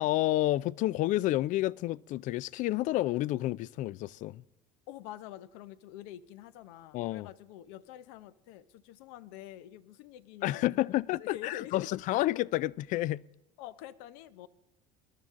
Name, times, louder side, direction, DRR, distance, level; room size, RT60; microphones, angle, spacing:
voice 1, 0.0-4.4 6.9-7.3 10.4-13.2, left 16 dB, 50° left, 0.4 m, -30 dB
voice 2, 4.9-10.9 11.2-11.9 13.6-14.5, left 12 dB, 75° left, 0.7 m, -46 dB
20.5 x 11.5 x 3.7 m
supercardioid pair, 100°, 16 cm